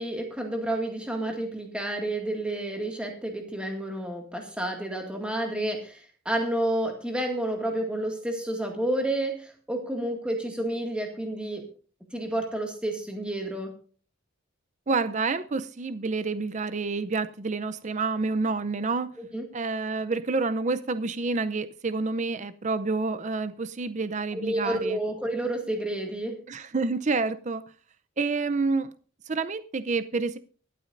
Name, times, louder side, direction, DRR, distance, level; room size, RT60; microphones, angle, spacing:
voice 1, 0.0-6.0 6.3-11.6 12.1-13.7 19.2-19.5 24.3-26.4, right 1 dB, 5° right, 2.0 m, -30 dB
voice 2, 14.9-19.1 19.5-25.0 26.5-27.6 28.2-28.9 29.3-30.4, right 3 dB, 35° right, 0.5 m, -28 dB
24.0 x 8.5 x 2.6 m
head